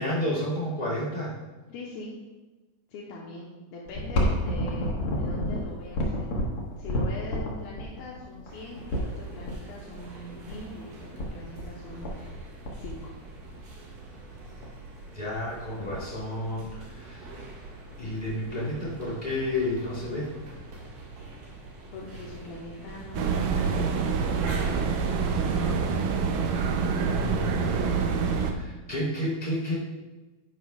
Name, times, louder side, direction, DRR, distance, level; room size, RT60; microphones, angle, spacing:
voice 1, 0.0-1.4 15.1-17.3 18.0-20.3 27.0-28.1 28.4-29.8, left 1 dB, 15° left, -7 dB, 2.8 m, -31 dB
voice 2, 1.7-2.1 2.9-6.3 6.8-12.5 12.8-13.1 21.9-24.2 24.5-26.1 28.3-28.8, left 2 dB, 75° left, -4 dB, 2.8 m, -42 dB
sound 1, 3.9-9.5 10.5-10.6 10.8-10.9 11.2-11.7 12.0-12.4 12.6-13.5 14.1-14.2 14.6-14.9 15.3-15.4 15.5-16.1 16.6-17.4 17.8-17.9 18.8-18.9, equal, 60° left, 1.5 m, -30 dB
sound 2, 8.5-27.9, right 2 dB, 65° right, 3.3 m, -43 dB
sound 3, 23.1-28.5, right 5 dB, 85° right, 1.9 m, -26 dB
11.0 x 9.8 x 2.4 m, 1.2 s
omnidirectional pair, 4.6 m